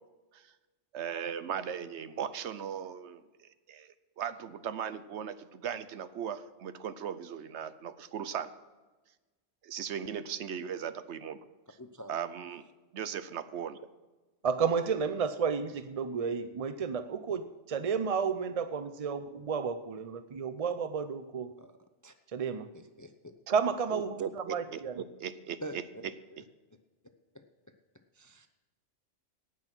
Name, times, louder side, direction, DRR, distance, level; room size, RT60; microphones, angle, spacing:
voice 1, 0.9-8.5 9.6-11.4 12.1-12.6 12.9-13.8 23.9-24.8 25.2-25.8, right 8 dB, 70° right, 13 dB, 1.0 m, -38 dB
voice 2, 11.8-12.1 21.6-21.7 22.0-22.1 22.7-23.1 25.6-25.8 26.3-26.4 27.3-27.4 28.1-28.5, right 1 dB, 25° left, 8 dB, 0.5 m, -44 dB
voice 3, 14.4-21.5 22.3-22.7 23.5-25.0, right 6 dB, 50° right, 11 dB, 0.4 m, -32 dB
17.5 x 6.1 x 6.0 m, 1.2 s
omnidirectional pair, 1.2 m